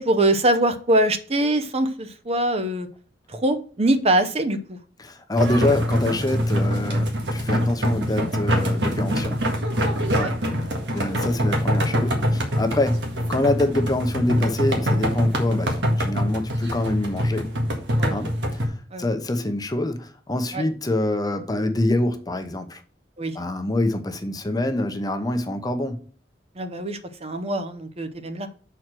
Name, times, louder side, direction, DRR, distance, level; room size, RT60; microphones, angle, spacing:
voice 1, 0.0-2.9 3.3-4.6 10.1-10.3 18.0-18.2 18.9-19.0 20.5-20.6 23.2-23.4 26.6-28.5, right 1 dB, 35° right, 0.7 m, -23 dB
voice 2, 5.0-9.4 10.2-10.3 10.9-17.5 18.1-22.8 23.3-26.0, left 1 dB, 20° left, 0.8 m, -25 dB
sound 1, 5.4-18.7, equal, 85° right, 1.8 m, -24 dB
6.3 x 4.5 x 6.1 m
head